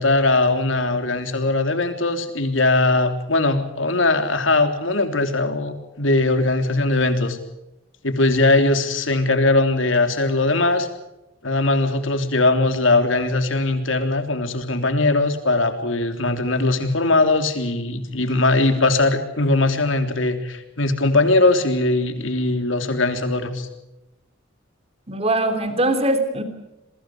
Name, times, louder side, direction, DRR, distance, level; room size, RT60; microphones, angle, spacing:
voice 1, 0.0-7.4 8.0-10.9 11.4-23.7, left 2 dB, 80° left, 7 dB, 3.4 m, -20 dB
voice 2, 25.1-26.4, right 1 dB, 30° right, 8 dB, 3.2 m, -21 dB
28.5 x 23.0 x 5.0 m, 0.93 s
head